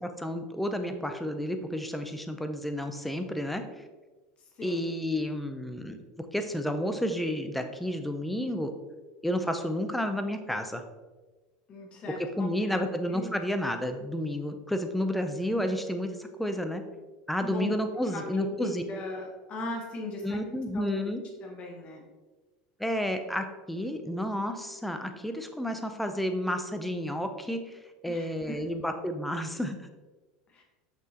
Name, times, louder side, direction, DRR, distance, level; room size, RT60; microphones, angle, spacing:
voice 1, 0.0-3.6 4.6-6.0 6.3-8.7 9.2-10.8 12.2-16.8 17.3-18.8 20.2-21.2 22.8-27.6 28.0-29.9, left 1 dB, 5° left, 7 dB, 0.6 m, -31 dB
voice 2, 11.7-12.5 13.1-13.3 17.4-17.8 18.1-20.4 20.7-21.0 21.4-22.0 28.1-28.6 30.5-30.6, left 1 dB, 35° left, 1 dB, 1.5 m, -38 dB
6.0 x 5.9 x 2.9 m, 1.2 s
supercardioid pair, 130°, 3 cm